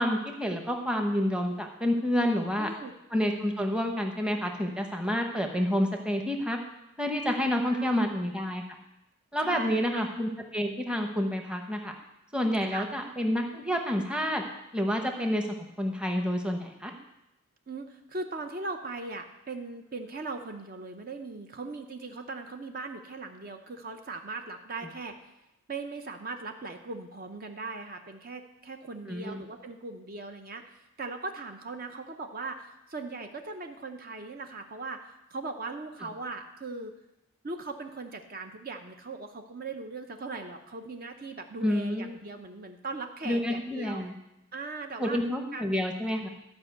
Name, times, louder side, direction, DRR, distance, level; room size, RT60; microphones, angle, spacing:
voice 1, 0.0-2.7 3.1-6.6 7.0-8.6 9.3-11.9 12.3-14.4 14.7-15.5 15.8-16.9 29.1-29.4 41.6-42.1 43.2-44.1 45.0-46.3, equal, 5° right, 3 dB, 0.9 m, -29 dB
voice 2, 2.6-2.9 7.6-8.1 9.4-10.0 12.6-12.9 17.7-25.2 25.7-36.9 37.4-44.0 44.5-45.2 45.5-45.6, right 3 dB, 45° right, 5 dB, 0.7 m, -39 dB
12.5 x 5.3 x 7.9 m, 0.90 s
head